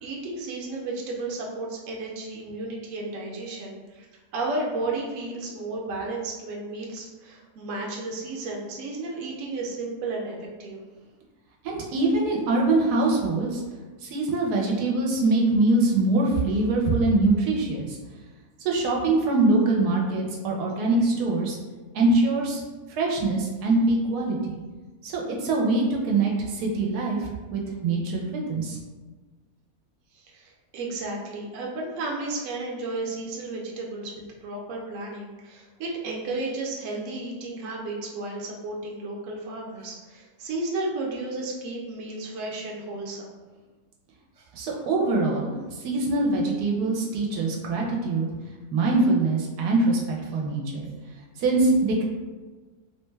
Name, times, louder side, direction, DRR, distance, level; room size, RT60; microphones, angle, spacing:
voice 1, 0.0-4.0 4.3-10.8 30.1-43.3, right 2 dB, 65° right, -2 dB, 0.9 m, -33 dB
voice 2, 11.6-13.6 14.0-18.0 18.6-21.6 21.9-22.6 22.9-24.6 25.0-28.8 44.5-45.5 45.8-48.3 48.7-50.9 51.4-52.0, right 2 dB, 85° right, -1 dB, 1.2 m, -23 dB
3.2 x 2.2 x 3.2 m, 1.3 s
omnidirectional pair, 1.6 m